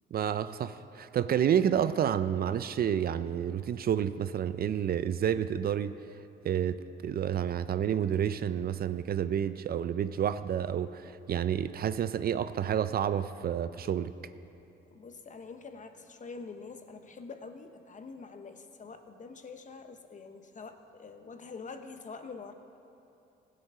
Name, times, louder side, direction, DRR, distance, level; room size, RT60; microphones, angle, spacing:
voice 1, 0.1-5.9 6.4-14.1, right 9 dB, 50° right, 13 dB, 0.4 m, -29 dB
voice 2, 14.9-22.5, left 4 dB, 40° left, 8 dB, 1.0 m, -45 dB
16.0 x 7.8 x 5.5 m, 2.8 s
cardioid pair, 90°, 20 cm